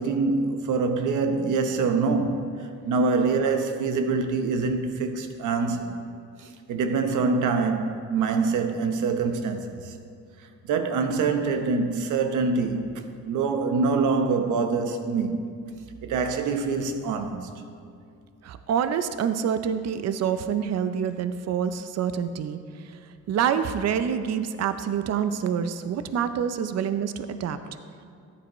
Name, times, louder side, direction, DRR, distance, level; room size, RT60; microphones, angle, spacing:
voice 1, 0.0-6.0 6.4-10.0 10.6-15.4 16.0-17.5, right 4 dB, 80° right, 1.0 m, -25 dB
voice 2, 18.4-22.6 23.3-27.6, right 8 dB, 60° right, 0.6 m, -26 dB
14.0 x 10.5 x 3.1 m
cardioid pair, 90°, 30 cm